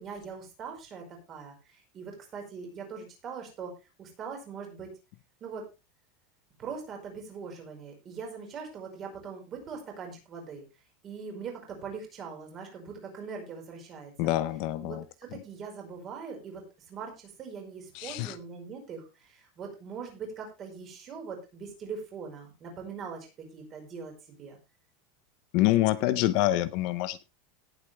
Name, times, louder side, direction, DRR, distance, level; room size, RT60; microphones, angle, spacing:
voice 1, 0.0-3.7 4.0-4.9 5.4-5.6 6.6-10.6 11.0-14.3 14.8-24.1 24.4-24.6, right 5 dB, 25° right, 5.0 m, -41 dB
voice 2, 14.2-15.0 17.9-18.4 25.5-27.3, left 15 dB, 45° left, 0.7 m, -26 dB
18.0 x 8.1 x 3.4 m
supercardioid pair, 180°, 0 cm